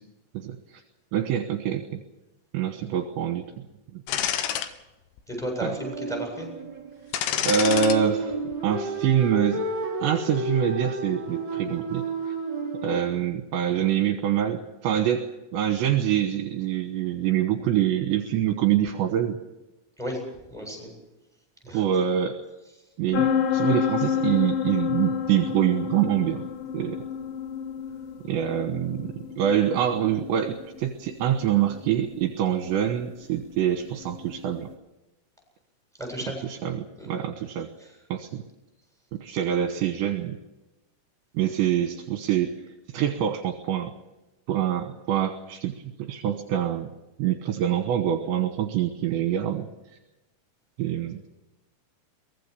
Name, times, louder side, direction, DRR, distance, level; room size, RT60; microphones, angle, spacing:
voice 1, 0.3-0.8 1.1-2.0 2.5-3.4 3.9-4.0 5.6-5.8 7.5-8.4 8.6-9.6 10.0-12.3 12.8-15.3 15.5-19.4 21.7-22.4 23.0-26.5 26.7-27.0 28.2-34.7 36.4-37.7 38.1-38.4 39.1-40.4 41.3-42.5 42.9-43.9 44.5-45.7 46.0-46.9 47.2-50.0 50.8-51.2, right 9 dB, 70° right, 7 dB, 3.3 m, -25 dB
sound 1, 4.1-4.7 5.2-5.3 7.1-8.0 8.3-8.5, left 10 dB, 80° left, 3.7 m, -27 dB
voice 2, 5.3-6.5 20.0-20.2 20.5-20.9 21.6-21.8 36.0-36.4 37.0-37.1, equal, ahead, 2 dB, 7.3 m, -33 dB
sound 2, 5.8-13.1, right 2 dB, 25° right, 6.0 m, -32 dB
sound 3, 23.1-34.6, left 8 dB, 65° left, 2.6 m, -30 dB
23.0 x 19.5 x 6.9 m, 1.0 s
omnidirectional pair, 5.8 m